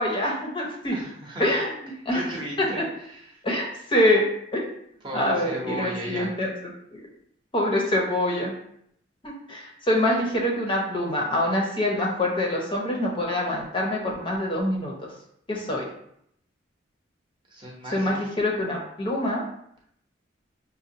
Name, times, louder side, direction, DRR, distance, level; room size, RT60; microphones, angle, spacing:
voice 1, 0.0-1.0 1.4-1.7 2.0-2.2 2.6-2.7 3.4-4.2 4.5-4.6 5.1-6.5 6.9-7.0 7.5-8.5 9.2-14.9 15.5-15.8 17.9-19.4, left 1 dB, 25° left, -2 dB, 0.7 m, -25 dB
voice 2, 0.9-1.5 2.1-3.4 5.0-6.3 17.5-18.3, right 1 dB, 25° right, -3 dB, 0.8 m, -36 dB
5.3 x 2.2 x 2.7 m, 0.71 s
head